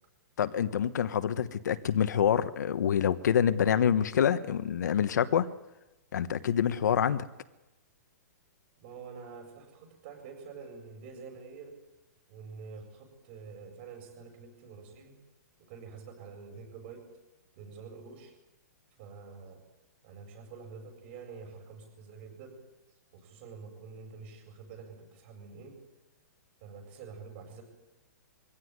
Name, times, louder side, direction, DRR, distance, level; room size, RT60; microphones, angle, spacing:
voice 1, 0.4-5.5 6.1-7.2, left 8 dB, 70° left, 11 dB, 1.2 m, -26 dB
voice 2, 8.8-11.8 12.3-15.2 15.6-17.0 17.5-18.3 19.0-19.6 20.0-22.6 23.1-25.8 26.6-27.6, right 5 dB, 35° right, 3 dB, 7.7 m, -47 dB
23.5 x 16.0 x 9.7 m, 1.0 s
hypercardioid pair, 165°, 10 cm